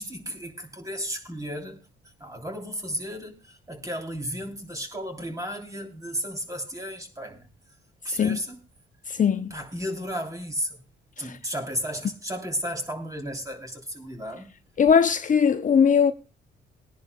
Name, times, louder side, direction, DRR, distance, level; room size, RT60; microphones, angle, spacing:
voice 1, 0.0-1.8 2.2-7.5 8.0-8.6 9.5-10.8 11.2-14.5, equal, 15° right, 3.3 m, -34 dB
voice 2, 9.1-9.5 11.2-11.3 14.8-16.1, left 7 dB, 40° left, 0.7 m, -20 dB
21.0 x 10.5 x 2.3 m
cardioid pair, 90°, 20 cm